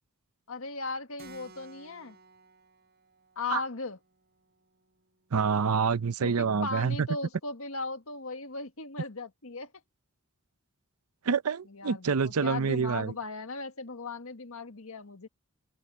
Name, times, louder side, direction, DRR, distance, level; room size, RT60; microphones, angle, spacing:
voice 1, 0.5-2.2 3.3-4.0 6.2-9.7 11.7-15.3, left 3 dB, 70° left, 1.6 m, -37 dB
Keyboard (musical), 1.2-6.3, right 3 dB, 45° right, 8.0 m, -57 dB
voice 2, 5.3-7.1 11.3-13.1, right 5 dB, 80° right, 0.6 m, -27 dB
open air
head